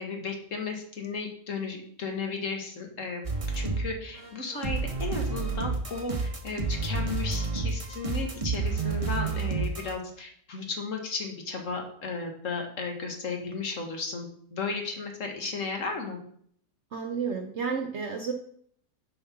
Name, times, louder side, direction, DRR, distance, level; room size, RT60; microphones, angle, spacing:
voice 1, 0.0-3.2 3.5-16.2, left 4 dB, 55° left, 3 dB, 1.5 m, -34 dB
sound 1, 3.2-3.9 4.2-9.9, right 4 dB, 25° right, 0.8 m, -30 dB
voice 2, 16.9-18.3, right 5 dB, 55° right, 3 dB, 0.8 m, -31 dB
7.3 x 4.6 x 5.7 m, 0.63 s
omnidirectional pair, 1.7 m